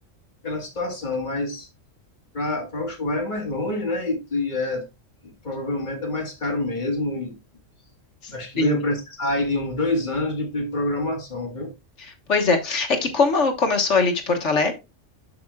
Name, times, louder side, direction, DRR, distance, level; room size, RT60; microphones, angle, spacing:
voice 1, 0.4-1.7 2.3-4.8 5.2-7.4 8.3-11.7, left 2 dB, 35° left, 2.0 m, -27 dB
voice 2, 12.0-14.7, left 4 dB, 65° left, 1.6 m, -21 dB
11.5 x 4.9 x 2.3 m
omnidirectional pair, 1.3 m